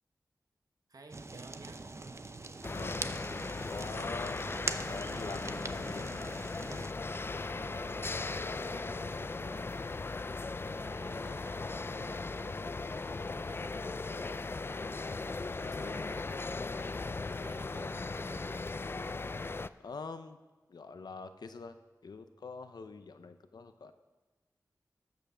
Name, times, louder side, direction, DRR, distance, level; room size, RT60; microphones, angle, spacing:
voice 1, 0.9-1.9 7.1-9.9 10.6-14.4 15.6-16.8 17.4-18.8, right 3 dB, 60° right, 5 dB, 1.1 m, -54 dB
Fire, 1.1-6.9, right 3 dB, 40° right, 0.6 m, -42 dB
sound 1, 2.6-19.7, left 3 dB, 35° left, 0.3 m, -38 dB
voice 2, 3.6-4.5 4.7-6.2 11.1-11.4 15.6-16.4 17.5-17.6 19.8-20.4 20.7-21.8 22.0-23.9, left 4 dB, 85° left, 10 dB, 0.7 m, -45 dB
13.5 x 5.7 x 6.2 m, 1.2 s
cardioid pair, 50°, 7 cm